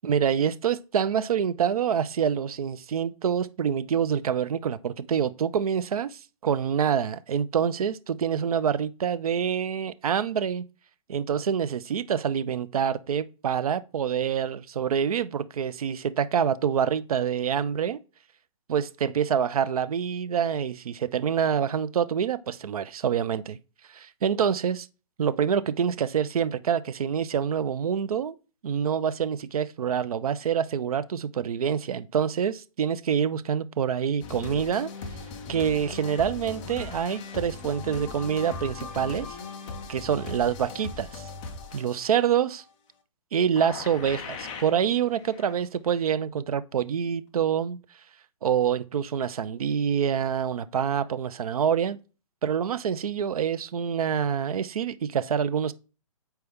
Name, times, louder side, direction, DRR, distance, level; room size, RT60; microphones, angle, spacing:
voice 1, 0.0-10.6 11.1-18.0 18.7-23.6 23.9-24.9 25.2-28.3 28.6-34.9 35.5-39.4 39.9-41.3 41.7-42.6 43.3-47.8 48.4-52.0 52.4-55.7, right 8 dB, 90° right, 0.5 m, -26 dB
sound 1, 34.2-42.4 43.6-44.9 45.2-45.6 45.9-46.0, left 4 dB, 15° left, 0.5 m, -39 dB
8.1 x 4.5 x 3.5 m
hypercardioid pair, 170°, 18 cm